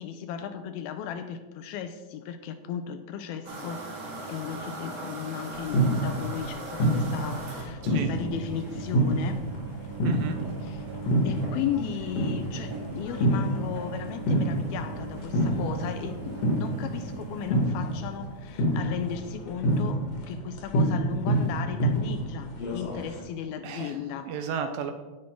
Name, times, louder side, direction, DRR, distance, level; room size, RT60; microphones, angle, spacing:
voice 1, 0.0-4.0 4.3-9.4 10.6-10.9 11.2-24.3, left 9 dB, 80° left, 2.3 m, -35 dB
sound 1, 3.4-18.3, right 3 dB, 35° right, 1.7 m, -39 dB
sound 2, 5.5-23.2, right 1 dB, 50° left, 2.2 m, -28 dB
voice 2, 10.0-10.4 23.6-24.0 24.3-24.9, right 7 dB, 75° right, 2.3 m, -33 dB
17.5 x 6.0 x 4.5 m
omnidirectional pair, 4.7 m